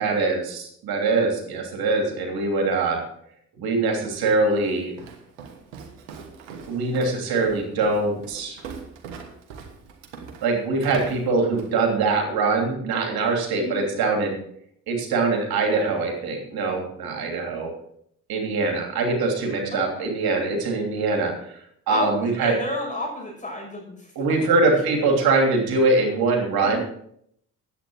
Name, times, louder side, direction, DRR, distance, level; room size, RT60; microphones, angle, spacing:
voice 1, 0.0-3.0 3.6-4.9 6.7-8.6 10.4-14.4 14.9-17.7 18.3-21.6 21.9-22.5 24.2-26.8, right 3 dB, 70° right, 2 dB, 3.1 m, -23 dB
Walk footsteps, 4.0-11.8, right 6 dB, 90° right, 1.4 m, -41 dB
voice 2, 19.7-20.1 21.9-24.7 26.6-26.8, left 2 dB, 20° left, -1 dB, 6.4 m, -32 dB
10.5 x 8.5 x 6.3 m, 0.69 s
hypercardioid pair, 45°, 37 cm